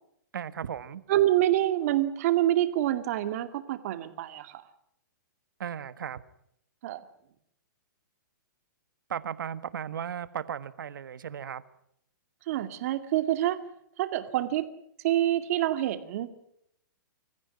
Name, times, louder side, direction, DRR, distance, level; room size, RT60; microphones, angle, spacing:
voice 1, 0.3-1.0 5.6-6.2 9.1-11.6, right 8 dB, 75° right, 1.5 m, -36 dB
voice 2, 1.1-4.6 6.8-7.1 12.5-13.6 14.0-14.7 15.0-16.3, right 13 dB, 45° right, 2.3 m, -26 dB
25.5 x 15.0 x 9.8 m
hypercardioid pair, 150°, 11 cm